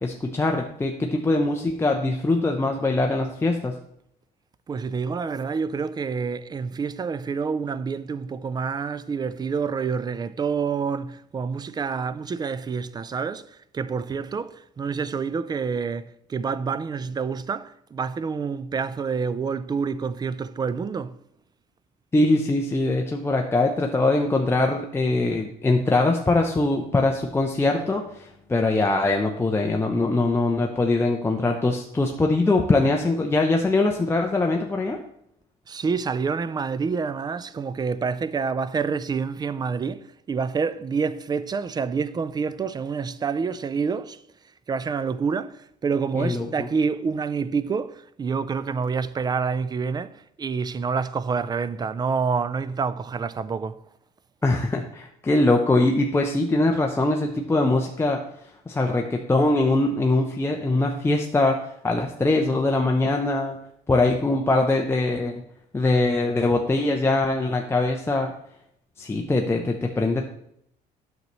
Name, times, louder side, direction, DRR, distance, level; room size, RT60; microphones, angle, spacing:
voice 1, 0.0-3.8 22.1-35.0 46.2-46.7 54.4-58.2 58.7-63.6 63.9-65.3 65.7-68.3 69.0-70.2, left 2 dB, 15° left, 0.6 m, -22 dB
voice 2, 4.7-21.2 35.7-44.2 44.7-53.8, right 5 dB, 25° right, 0.4 m, -27 dB
9.2 x 6.5 x 3.1 m
cardioid pair, 110°, 17 cm